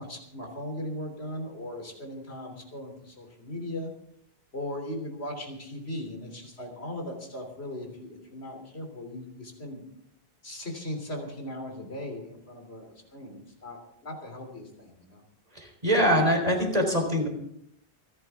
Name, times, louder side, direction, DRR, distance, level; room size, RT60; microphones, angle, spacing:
voice 1, 0.0-3.9 4.5-9.8 10.4-15.2, left 1 dB, 85° left, 3 dB, 3.5 m, -38 dB
voice 2, 15.5-17.3, equal, 40° right, 2 dB, 3.8 m, -23 dB
27.5 x 10.5 x 3.6 m, 0.73 s
omnidirectional pair, 1.0 m